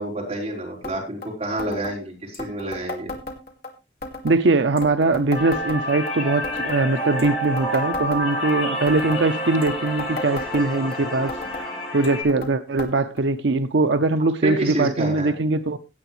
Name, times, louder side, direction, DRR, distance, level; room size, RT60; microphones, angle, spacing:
voice 1, 0.0-3.1 14.4-15.3, right 1 dB, 30° right, 4.8 m, -28 dB
sound 1, 0.8-1.0 1.2-1.3 1.6-1.9 2.3-3.7 4.0-4.4 4.8-6.1 6.4-6.8 7.2-8.6 8.9-9.2 9.6-11.0 11.3-11.7 12.0-12.5 12.8-12.9 13.2-13.3 14.0-14.1 14.9-15.0, left 2 dB, 55° left, 2.3 m, -34 dB
voice 2, 4.2-15.8, right 3 dB, 75° right, 0.6 m, -21 dB
sound 2, 5.3-12.2, equal, 35° left, 4.9 m, -28 dB
17.5 x 8.1 x 3.2 m
head